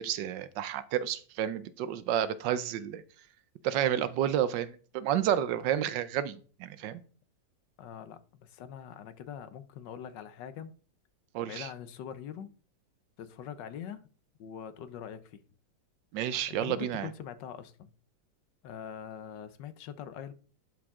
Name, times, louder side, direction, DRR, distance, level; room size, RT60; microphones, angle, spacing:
voice 1, 0.0-3.0 3.6-7.0 11.3-11.7 16.1-17.1, right 10 dB, 75° right, 1.3 m, -30 dB
voice 2, 7.8-10.7 11.5-12.5 13.2-14.0 14.4-15.4 16.5-17.9 18.6-20.3, left 8 dB, 75° left, 1.4 m, -43 dB
11.5 x 4.8 x 3.6 m
omnidirectional pair, 2.0 m